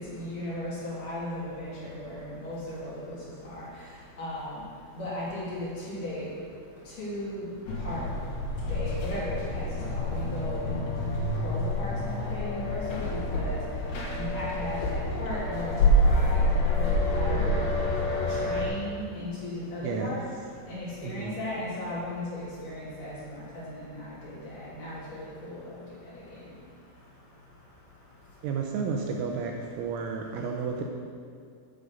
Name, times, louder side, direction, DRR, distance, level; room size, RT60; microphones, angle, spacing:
voice 1, 0.0-3.2 3.4-3.6 4.2-4.6 4.9-6.3 7.0-7.5 7.8-8.0 8.7-13.6 14.2-17.9 18.3-20.2 20.7-25.6, left 1 dB, 45° left, -9 dB, 4.1 m, -36 dB
sound 1, 7.7-18.7, left 1 dB, 70° left, 4.1 m, -27 dB
voice 2, 19.8-20.2 21.0-21.4 28.4-30.8, right 5 dB, 85° right, 1 dB, 3.0 m, -32 dB
11.5 x 6.9 x 5.3 m, 2.1 s
omnidirectional pair, 5.9 m